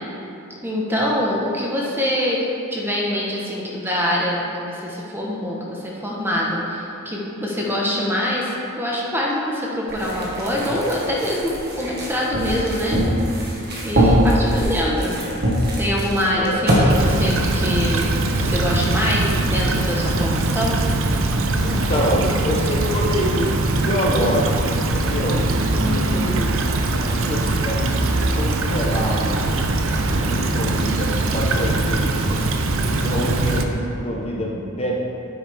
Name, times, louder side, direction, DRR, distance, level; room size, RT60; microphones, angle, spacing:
voice 1, 0.6-2.4 2.7-13.0 13.8-15.2 15.8-18.1 18.4-20.8 25.8-26.4, left 1 dB, 10° right, -4 dB, 1.1 m, -24 dB
sound 1, 9.9-16.8, equal, 50° right, 1.7 m, -22 dB
voice 2, 16.2-16.6 21.6-26.6 26.9-29.6 30.0-32.4 32.9-35.0, equal, 30° left, -2 dB, 1.1 m, -26 dB
Stream / Trickle dribble, 16.9-33.6, right 2 dB, 65° right, 0.7 m, -21 dB
9.3 x 8.8 x 3.5 m, 2.8 s
head